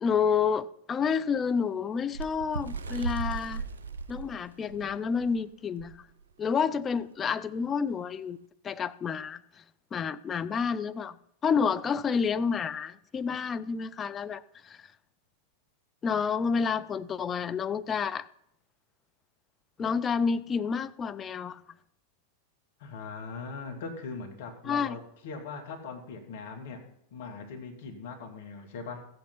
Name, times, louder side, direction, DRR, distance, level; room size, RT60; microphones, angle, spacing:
voice 1, 0.0-3.6 4.1-5.9 6.4-8.4 8.6-9.4 9.9-11.1 11.4-14.8 16.0-18.3 19.8-21.6 24.7-25.0, left 6 dB, 20° left, 0.6 m, -29 dB
Bird, 2.1-5.3 5.8-5.9 6.2-6.5 7.3-7.4, right 4 dB, 65° right, 1.0 m, -36 dB
voice 2, 22.8-26.8 27.1-29.1, left 4 dB, 55° left, 2.5 m, -40 dB
14.5 x 8.3 x 5.7 m
figure-of-eight pair, 90°, 0 cm